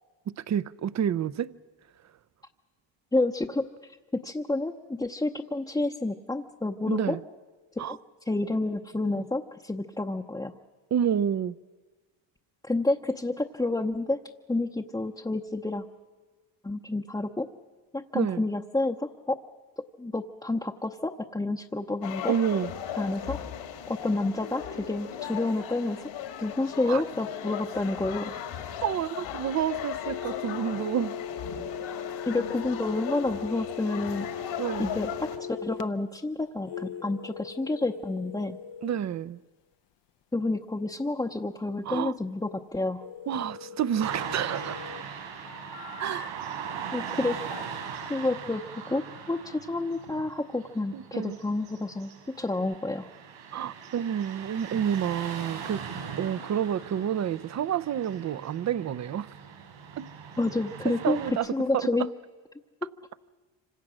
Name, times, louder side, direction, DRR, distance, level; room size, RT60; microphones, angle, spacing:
voice 1, 0.3-1.5 2.0-2.1 6.9-7.2 7.8-8.0 10.9-11.6 18.1-18.4 22.3-22.7 26.9-27.0 28.8-31.1 34.6-35.0 38.8-39.4 41.8-42.2 43.3-44.9 46.0-46.5 50.9-51.4 53.5-55.9 56.2-59.3 60.0-60.1 60.8-62.1, right 9 dB, 35° right, 0.6 m, -29 dB
voice 2, 3.1-3.7 4.2-7.2 7.8-8.0 8.3-10.5 12.7-14.2 14.5-15.8 16.6-17.5 17.9-19.4 20.0-22.3 23.0-23.4 23.9-26.0 26.4-28.3 32.3-34.3 34.8-38.6 40.3-43.0 46.9-47.4 48.1-48.6 48.9-52.1 52.4-53.1 60.4-61.2 61.5-62.1, left 2 dB, 10° left, 0.8 m, -29 dB
sound 1, 22.0-35.4, left 9 dB, 80° left, 2.9 m, -37 dB
sound 2, 30.0-35.8 36.6-39.0 43.0-45.0 45.5-46.3 47.2-47.7, left 7 dB, 60° left, 0.9 m, -39 dB
Car passing by / Traffic noise roadway noise, 44.0-61.3, right 7 dB, 80° right, 7.2 m, -40 dB
26.0 x 26.0 x 6.3 m
cardioid pair, 95°, 47 cm